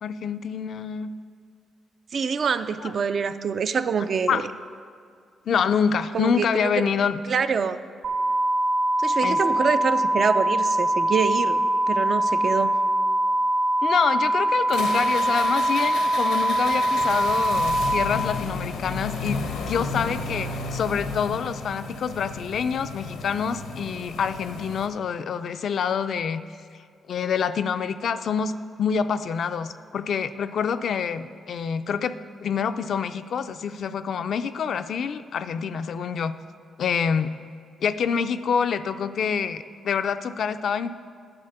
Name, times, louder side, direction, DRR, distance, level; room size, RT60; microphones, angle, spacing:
voice 1, 0.0-1.1 2.8-2.9 4.3-4.5 5.5-7.2 9.2-9.4 13.8-19.4 19.7-26.4 27.1-32.2 32.4-36.4 36.8-37.3 37.8-40.9, left 6 dB, 65° left, 11 dB, 0.3 m, -26 dB
voice 2, 2.1-4.4 6.1-6.9 7.3-7.8 9.0-12.7, right 6 dB, 60° right, 11 dB, 0.4 m, -25 dB
sound 1, 8.0-18.0, right 1 dB, 80° right, 0.9 m, -23 dB
sound 2, 14.7-24.9, left 3 dB, 90° left, 0.8 m, -33 dB
9.7 x 4.1 x 6.7 m, 2.2 s
cardioid pair, 65°, 0 cm